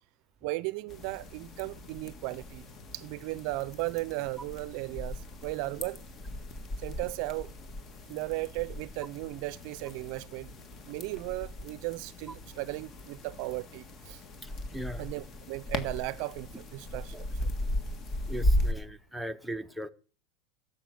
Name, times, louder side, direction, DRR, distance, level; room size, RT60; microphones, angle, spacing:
voice 1, 0.4-2.7 2.9-6.0 6.8-7.5 8.1-10.5 10.9-14.2 15.0-17.1 17.4-17.5, right 20 dB, 55° right, 0.5 m, -36 dB
sound 1, 0.9-18.7, left 1 dB, 30° left, 1.7 m, -37 dB
voice 2, 14.4-15.1 17.1-17.2 18.3-19.9, right 1 dB, ahead, 0.8 m, -39 dB
12.0 x 7.1 x 7.8 m
supercardioid pair, 140°, 0 cm